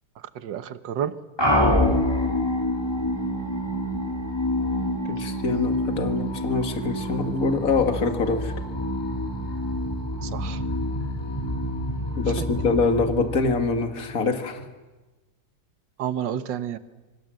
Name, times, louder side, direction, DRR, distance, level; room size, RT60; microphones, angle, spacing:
voice 1, 0.3-1.1 10.2-10.6 16.0-16.8, right 9 dB, 60° right, 12 dB, 1.7 m, -30 dB
sound 1, 1.4-14.2, left 1 dB, 10° left, 2.6 m, -27 dB
voice 2, 5.0-8.5 12.2-14.7, left 4 dB, 40° left, 6 dB, 2.3 m, -24 dB
26.0 x 24.5 x 7.8 m, 1.2 s
omnidirectional pair, 2.4 m